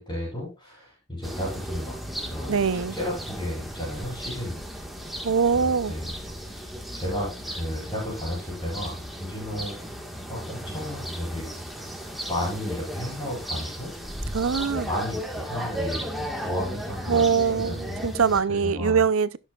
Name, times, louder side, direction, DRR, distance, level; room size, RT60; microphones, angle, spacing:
voice 1, 0.0-2.6 2.9-4.6 5.5-6.1 6.4-9.9 10.3-11.5 12.3-13.9 14.7-18.1 18.5-19.0, left 1 dB, 20° left, 5.3 m, -33 dB
sound 1, 1.2-18.4, equal, ahead, 1.5 m, -35 dB
voice 2, 2.5-3.0 5.2-5.9 14.3-14.9 17.1-19.4, right 6 dB, 70° right, 0.6 m, -23 dB
16.0 x 6.5 x 2.4 m
head